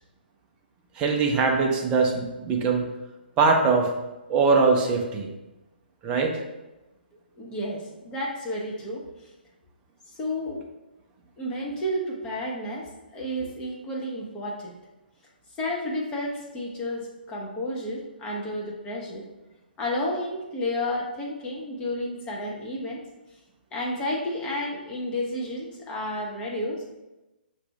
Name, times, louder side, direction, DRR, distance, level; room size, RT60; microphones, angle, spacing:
voice 1, 1.0-2.9 3.4-3.9 4.3-5.3 6.0-6.4, right 4 dB, 20° right, 2 dB, 0.6 m, -22 dB
voice 2, 7.4-9.1 10.2-10.6 11.4-14.7 15.6-19.2 19.8-23.0 23.7-26.9, left 1 dB, 15° left, -3 dB, 0.8 m, -31 dB
5.9 x 2.5 x 3.2 m, 1.0 s
figure-of-eight pair, 130°, 6 cm